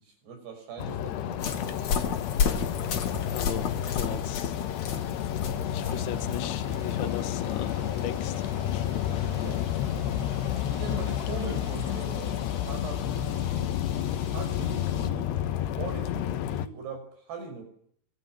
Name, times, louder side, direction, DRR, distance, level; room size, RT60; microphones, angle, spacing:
voice 1, 0.0-2.2 9.1-9.6 10.5-13.7 14.2-15.3 15.8-17.6, right 4 dB, 80° right, 8.1 m, -41 dB
sound 1, 0.8-16.7, left 10 dB, 85° left, 3.4 m, -30 dB
sound 2, 1.4-15.1, left 6 dB, 50° left, 3.2 m, -35 dB
voice 2, 3.3-4.5 4.9-5.3 5.6-9.4, left 9 dB, 65° left, 1.2 m, -39 dB
sound 3, 5.8-12.1, right 3 dB, 25° right, 2.5 m, -48 dB
25.0 x 22.5 x 9.2 m
omnidirectional pair, 4.7 m